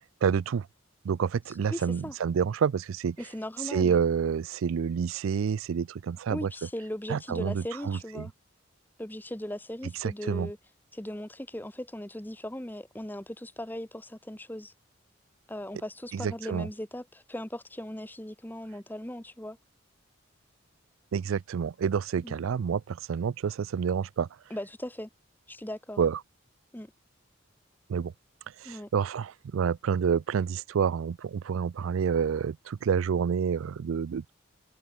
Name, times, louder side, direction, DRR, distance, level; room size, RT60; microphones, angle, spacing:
voice 1, 0.2-0.7 1.0-3.2 3.6-6.5 7.1-8.3 10.0-10.5 16.1-16.7 21.1-24.3 26.0-26.2 27.9-28.1 28.6-34.3, right 7 dB, 85° right, 0.4 m, -28 dB
voice 2, 1.7-2.1 3.2-4.0 6.3-8.3 9.0-10.6 10.9-14.7 15.5-19.6 22.2-22.4 24.5-25.1 25.5-26.0 26.7-26.9 28.6-28.9, left 1 dB, 10° left, 1.1 m, -38 dB
head